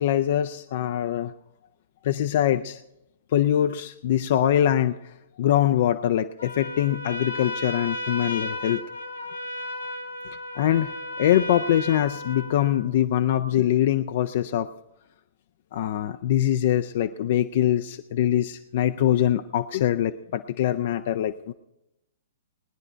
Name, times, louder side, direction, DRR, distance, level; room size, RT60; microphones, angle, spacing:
voice 1, 0.0-1.3 2.0-2.8 3.3-8.8 10.6-10.9 11.2-14.7 15.7-21.5, left 11 dB, 55° left, 9 dB, 0.4 m, -23 dB
Trumpet, 6.4-12.9, left 1 dB, 80° left, 1.5 m, -34 dB
19.5 x 9.8 x 4.5 m, 0.90 s
figure-of-eight pair, 115°, 0 cm